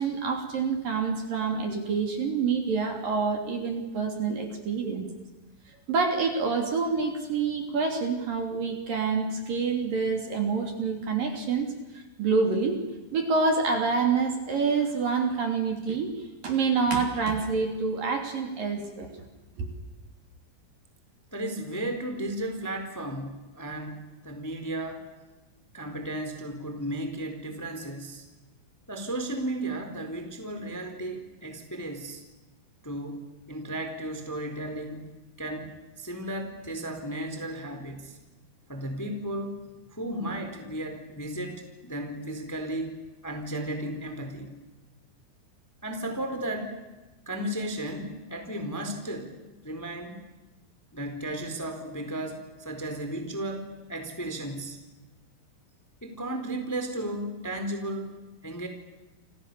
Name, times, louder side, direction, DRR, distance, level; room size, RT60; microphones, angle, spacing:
voice 1, 0.0-5.1 5.9-11.7 11.9-12.8 13.1-16.1 16.4-19.1 19.6-19.7, right 4 dB, 45° right, 4 dB, 4.3 m, -27 dB
voice 2, 21.3-25.1 25.7-28.2 28.9-32.2 32.8-35.1 35.4-35.7 36.0-38.2 38.7-39.6 39.9-42.9 43.2-44.5 45.8-46.8 47.2-49.3 49.6-50.2 50.9-54.8 56.0-58.7, right 1 dB, 5° left, 5 dB, 3.1 m, -34 dB
29.5 x 27.5 x 7.0 m, 1.1 s
omnidirectional pair, 5.8 m